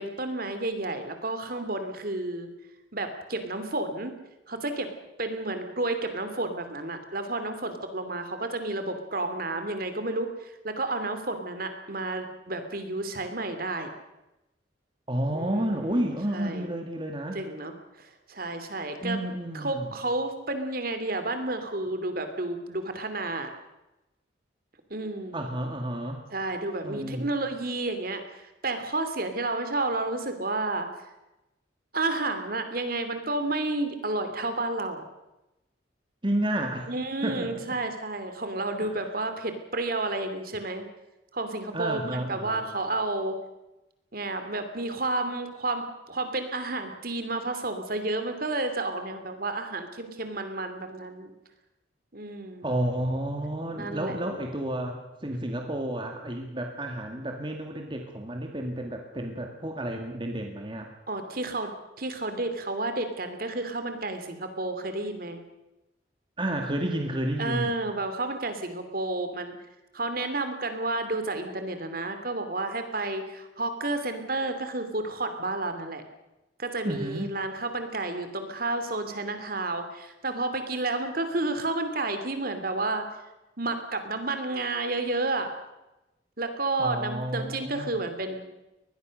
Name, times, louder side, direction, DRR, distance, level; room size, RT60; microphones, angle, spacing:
voice 1, 0.0-2.5 2.9-4.1 4.5-4.9 5.2-13.9 15.3-16.0 16.3-16.7 17.3-19.2 19.5-23.5 24.9-25.4 26.3-30.9 31.9-35.0 36.9-40.9 41.3-43.4 44.1-51.3 52.1-52.6 53.8-54.2 61.1-65.4 67.4-69.6 69.9-76.0 76.6-83.0 83.6-85.5 86.4-88.5, right 2 dB, 50° right, 8 dB, 2.9 m, -31 dB
voice 2, 15.1-17.4 19.0-19.9 25.3-26.2 26.8-27.3 36.2-36.9 37.2-37.6 38.8-39.0 41.7-42.8 52.6-60.9 66.4-67.7 76.8-77.3 86.8-87.9, right 1 dB, 25° right, 3 dB, 2.2 m, -31 dB
23.5 x 20.0 x 6.6 m, 0.96 s
head